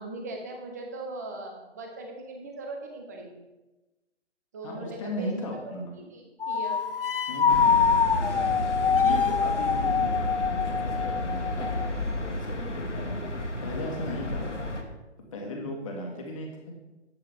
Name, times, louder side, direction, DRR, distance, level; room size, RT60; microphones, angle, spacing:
voice 1, 0.0-3.3 4.5-5.3 5.9-6.9, right 2 dB, 15° right, 2 dB, 0.7 m, -39 dB
voice 2, 4.6-5.9 7.3-7.9 8.7-14.6 15.2-17.0, left 1 dB, 25° left, 1 dB, 1.7 m, -37 dB
sound 1, 6.4-11.9, left 6 dB, 50° left, 0.4 m, -25 dB
sound 2, 7.5-14.8, left 1 dB, 75° left, 1.7 m, -32 dB
10.5 x 8.9 x 3.5 m, 1.1 s
figure-of-eight pair, 145°, 36 cm